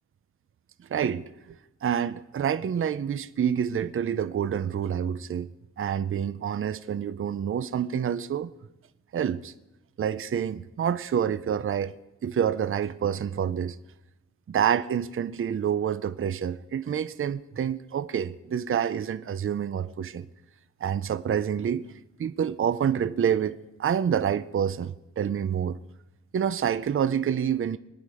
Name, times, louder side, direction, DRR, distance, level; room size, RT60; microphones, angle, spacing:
voice 1, 0.9-5.5 5.8-8.5 9.1-9.5 10.0-11.9 12.2-13.8 14.5-20.3 20.8-21.8 22.2-25.8 26.3-27.8, right 8 dB, 45° right, 0.5 m, -27 dB
25.0 x 10.0 x 4.9 m
wide cardioid pair, 145°, 30 cm